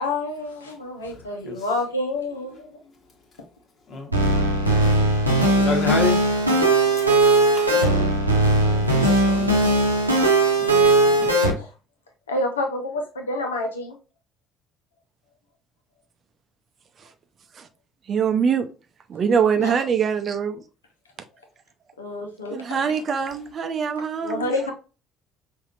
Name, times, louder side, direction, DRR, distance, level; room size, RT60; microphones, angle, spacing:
voice 1, 0.0-2.7 7.7-8.1 11.6-11.7 12.3-13.9 19.6-19.8 22.0-22.8 24.2-24.7, left 2 dB, 80° left, 0.9 m, -28 dB
voice 2, 3.9-5.1 5.5-6.2 6.9-7.2 7.4-8.1 8.6-9.5 10.3-11.3, left 3 dB, 40° left, 1.4 m, -31 dB
sound 1, 4.1-11.5, right 2 dB, 90° right, 0.8 m, -19 dB
voice 3, 18.1-18.7 19.1-20.6 22.5-24.7, right 6 dB, 40° right, 0.6 m, -23 dB
5.6 x 2.7 x 2.5 m
figure-of-eight pair, 55°, 0 cm